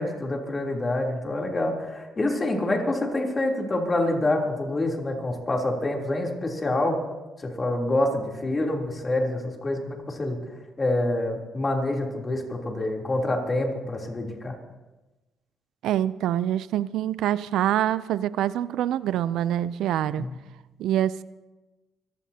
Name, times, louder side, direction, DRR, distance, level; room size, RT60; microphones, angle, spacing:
voice 1, 0.0-7.0 7.4-10.4 10.8-14.5 20.2-20.3, left 1 dB, 30° left, 0 dB, 3.3 m, -26 dB
voice 2, 15.8-20.3 20.8-21.2, right 11 dB, 85° right, 17 dB, 0.4 m, -25 dB
24.5 x 16.0 x 2.8 m, 1.1 s
cardioid pair, 90°, 0 cm